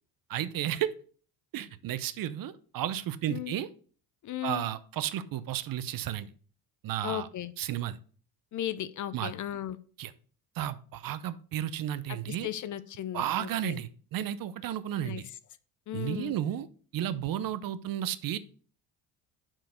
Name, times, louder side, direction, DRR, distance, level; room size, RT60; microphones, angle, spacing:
voice 1, 0.3-0.9 1.5-3.7 4.4-6.3 6.8-7.3 7.6-8.0 9.1-9.3 10.0-10.1 10.6-12.5 13.1-15.3 15.9-16.7 16.9-18.4, right 11 dB, 55° right, 15 dB, 0.7 m, -33 dB
voice 2, 4.2-4.7 7.0-7.5 8.5-9.8 12.1-13.8 15.0-15.2 15.9-16.4, left 11 dB, 45° left, 15 dB, 0.6 m, -36 dB
5.8 x 4.7 x 6.2 m, 0.42 s
supercardioid pair, 90°, 40 cm